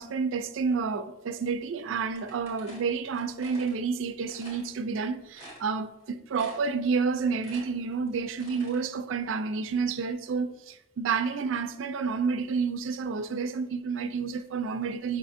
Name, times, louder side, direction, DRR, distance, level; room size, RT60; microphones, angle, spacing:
voice 1, 0.0-15.2, right 5 dB, 75° right, 0.4 m, -30 dB
sound 1, 2.1-3.8 4.3-4.7 5.0-5.1 5.3-6.0 6.3-6.8 7.1-8.8, right 1 dB, 30° left, 1.6 m, -47 dB
5.6 x 3.4 x 2.6 m
head